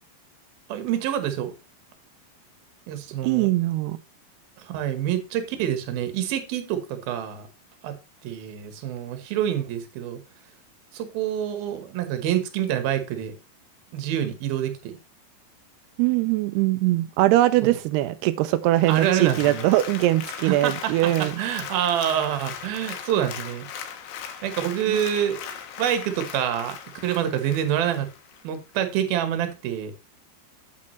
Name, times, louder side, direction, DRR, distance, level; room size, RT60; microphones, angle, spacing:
voice 1, 0.7-1.5 2.9-3.5 4.6-7.5 7.8-7.9 8.2-10.2 10.9-13.3 13.9-15.0 17.6-17.7 18.9-19.7 20.4-23.7 24.4-25.5 25.8-26.8 27.0-28.1 28.4-29.9, right 10 dB, 65° right, 9 dB, 2.7 m, -26 dB
voice 2, 3.2-4.0 16.0-21.3 24.9-25.0, right 16 dB, 85° right, 10 dB, 2.3 m, -21 dB
Applause, 18.7-28.4 28.9-29.0, left 8 dB, 75° left, 3.3 m, -39 dB
8.6 x 8.4 x 3.1 m, 0.27 s
omnidirectional pair, 5.3 m